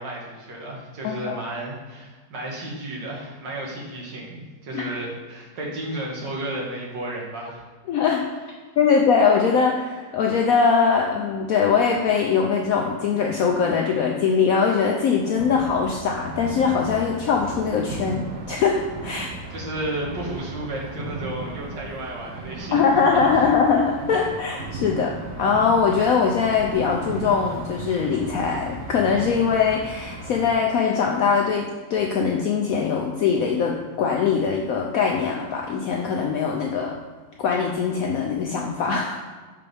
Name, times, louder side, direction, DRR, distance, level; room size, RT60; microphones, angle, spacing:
voice 1, 0.0-7.6 19.5-23.5, right 1 dB, 75° right, -2 dB, 1.9 m, -33 dB
voice 2, 1.0-1.4 4.7-4.8 7.9-8.2 8.8-19.3 22.7-36.9 37.4-39.1, left 6 dB, 75° left, 0 dB, 0.8 m, -22 dB
sound 1, 15.4-30.5, right 3 dB, 55° right, 0.8 m, -36 dB
5.7 x 5.3 x 3.4 m, 1.4 s
omnidirectional pair, 2.0 m